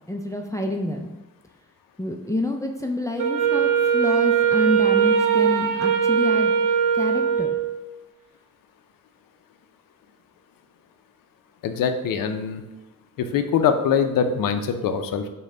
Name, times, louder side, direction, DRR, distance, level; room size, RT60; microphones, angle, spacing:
voice 1, 0.1-1.1 2.0-6.5 6.9-7.5, left 1 dB, 10° left, 2 dB, 0.4 m, -28 dB
Wind instrument woodwind instrument, 3.2-7.8, right 7 dB, 70° right, 0.6 m, -20 dB
voice 2, 11.6-12.6 13.2-15.3, left 7 dB, 90° left, 8 dB, 0.5 m, -23 dB
5.2 x 2.2 x 3.7 m, 1.0 s
cardioid pair, 70°, 32 cm